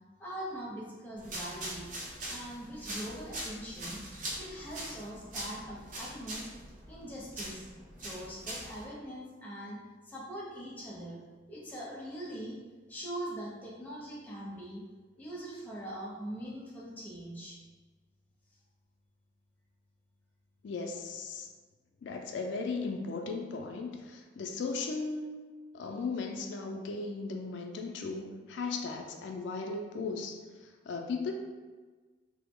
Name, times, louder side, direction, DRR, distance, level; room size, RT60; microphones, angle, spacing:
voice 1, 0.2-1.9 2.2-4.0 4.4-6.5 6.9-7.7 8.0-9.8 10.0-11.2 11.5-12.6 12.9-14.8 15.2-17.6, right 1 dB, 10° left, -6 dB, 0.6 m, -42 dB
sound 1, 1.2-8.8, right 1 dB, 45° right, 0.6 m, -42 dB
voice 2, 20.6-21.5 22.0-25.3 25.7-30.4 30.9-31.3, left 4 dB, 75° left, 2 dB, 0.3 m, -36 dB
3.2 x 2.0 x 3.5 m, 1.4 s
head